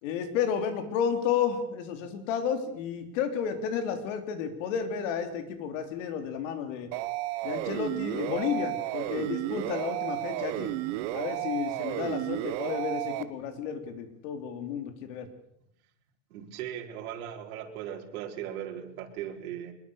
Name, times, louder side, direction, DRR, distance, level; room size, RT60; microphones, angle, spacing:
voice 1, 0.0-6.9 7.4-10.7 11.1-15.3, left 7 dB, 60° left, 7 dB, 3.8 m, -32 dB
sound 1, 6.9-13.2, right 16 dB, 50° right, 1.6 m, -32 dB
voice 2, 16.3-19.7, right 10 dB, 90° right, 2 dB, 4.5 m, -38 dB
24.0 x 22.0 x 6.7 m, 0.75 s
supercardioid pair, 180°, 42 cm